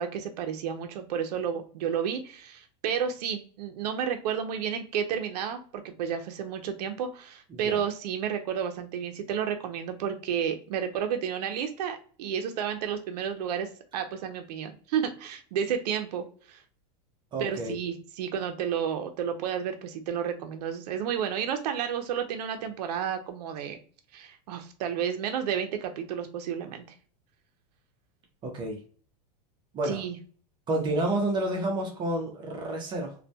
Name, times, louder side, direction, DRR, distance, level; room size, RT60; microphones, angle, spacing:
voice 1, 0.0-16.6 17.4-23.8 24.1-26.8 29.8-30.2, right 8 dB, 80° right, 6 dB, 0.5 m, -31 dB
voice 2, 17.3-17.7 28.4-28.8 29.7-30.0 30.7-33.1, right 1 dB, 25° right, 2 dB, 0.5 m, -29 dB
2.2 x 2.2 x 2.6 m, 0.43 s
supercardioid pair, 145°, 20 cm